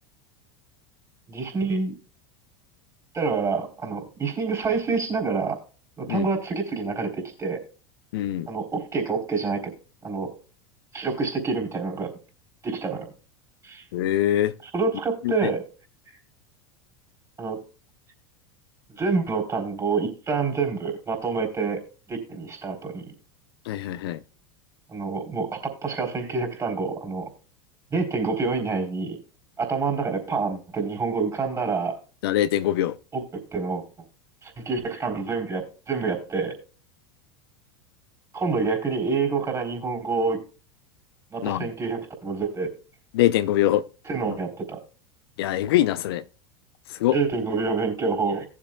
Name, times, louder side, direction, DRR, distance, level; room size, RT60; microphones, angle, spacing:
voice 1, 1.3-1.9 3.1-5.6 6.0-7.6 8.5-9.7 10.0-10.3 10.9-12.1 12.6-13.1 13.6-13.8 14.7-15.6 17.4-17.6 18.9-21.8 22.1-23.0 24.9-27.3 27.9-29.2 29.6-31.9 33.1-33.2 33.5-33.8 34.4-36.5 38.3-40.4 41.3-42.7 44.0-44.8 47.1-48.5, right 4 dB, 25° right, 3.8 m, -27 dB
voice 2, 8.1-8.5 13.9-14.5 15.2-15.5 23.7-24.2 32.2-33.0 41.4-41.7 43.1-43.9 45.4-46.2 46.9-47.2, left 13 dB, 70° left, 0.6 m, -23 dB
18.0 x 7.4 x 2.3 m
hypercardioid pair, 85°, 13 cm